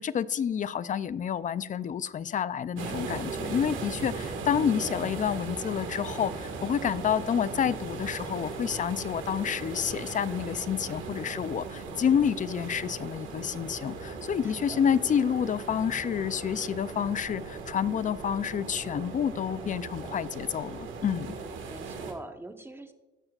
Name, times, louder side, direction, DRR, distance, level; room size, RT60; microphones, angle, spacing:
voice 1, 0.0-21.3, left 8 dB, 40° left, 16 dB, 0.4 m, -29 dB
sound 1, 2.8-22.1, right 4 dB, 80° right, 1.7 m, -38 dB
voice 2, 14.4-14.8 21.3-22.9, right 2 dB, 10° right, 7 dB, 1.1 m, -45 dB
17.0 x 6.6 x 2.4 m, 1.1 s
cardioid pair, 90°, 20 cm